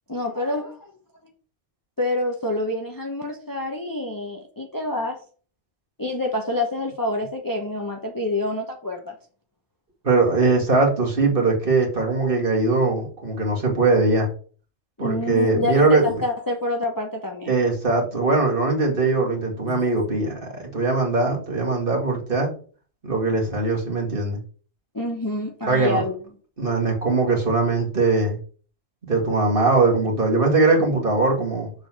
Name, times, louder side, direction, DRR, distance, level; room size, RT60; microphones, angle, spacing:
voice 1, 0.1-0.9 1.2-1.3 2.0-5.2 6.0-9.1 15.0-17.5 19.7-19.8 24.9-26.2, left 2 dB, 15° left, 0.9 m, -27 dB
voice 2, 10.0-14.3 15.0-16.2 17.5-22.5 23.0-24.4 25.7-26.0 26.6-28.4 29.0-31.7, right 3 dB, 40° right, 2.1 m, -21 dB
6.8 x 3.9 x 6.1 m
omnidirectional pair, 1.4 m